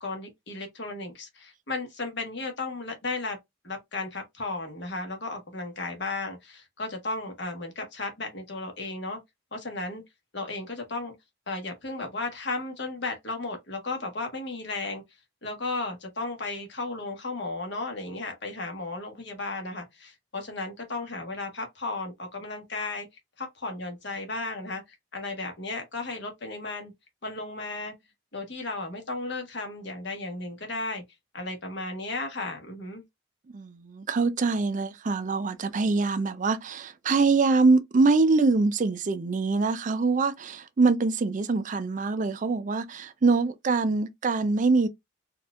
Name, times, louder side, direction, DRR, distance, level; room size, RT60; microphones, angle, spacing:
voice 1, 0.0-3.4 3.6-9.2 9.5-10.0 10.3-11.1 11.5-15.0 15.4-23.1 23.4-24.8 25.1-26.9 27.2-27.9 28.3-31.0 31.3-33.0, left 3 dB, 60° left, 1.2 m, -34 dB
voice 2, 33.5-44.9, right 3 dB, 40° right, 0.4 m, -24 dB
4.2 x 2.4 x 2.3 m
head